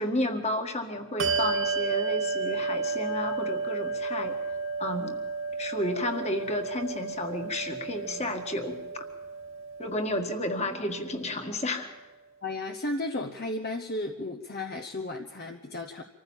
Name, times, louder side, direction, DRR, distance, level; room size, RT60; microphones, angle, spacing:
voice 1, 0.0-4.4 4.8-5.2 5.6-9.0 9.8-11.9, left 1 dB, 30° left, 6 dB, 1.8 m, -32 dB
Bell, 1.2-11.2, right 4 dB, 75° right, 2.9 m, -32 dB
voice 2, 12.4-16.0, left 2 dB, 50° left, 5 dB, 1.0 m, -34 dB
25.5 x 15.0 x 7.3 m, 1.2 s
head